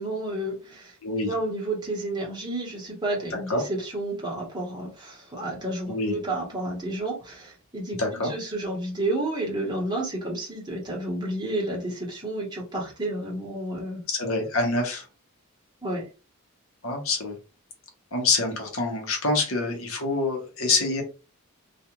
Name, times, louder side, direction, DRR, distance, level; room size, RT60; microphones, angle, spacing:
voice 1, 0.0-1.0 1.2-14.0 15.8-16.1, right 1 dB, 20° right, 1.0 m, -31 dB
voice 2, 1.0-1.3 3.5-3.6 5.9-6.1 8.0-8.3 14.1-15.0 16.8-17.3 18.1-21.0, left 3 dB, 65° left, 0.9 m, -26 dB
2.4 x 2.3 x 2.9 m
head